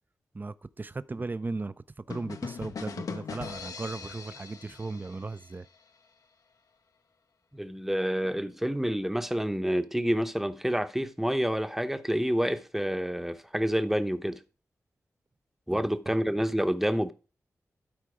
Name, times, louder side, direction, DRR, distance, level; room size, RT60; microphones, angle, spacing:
voice 1, 0.3-1.7 2.1-5.7 15.7-16.1, right 3 dB, 30° right, 0.5 m, -37 dB
sound 1, 2.1-5.8, left 5 dB, 75° left, 0.7 m, -40 dB
voice 2, 7.5-14.4 15.7-17.1, equal, 5° right, 0.8 m, -28 dB
12.0 x 4.5 x 4.9 m
cardioid pair, 45°, 6 cm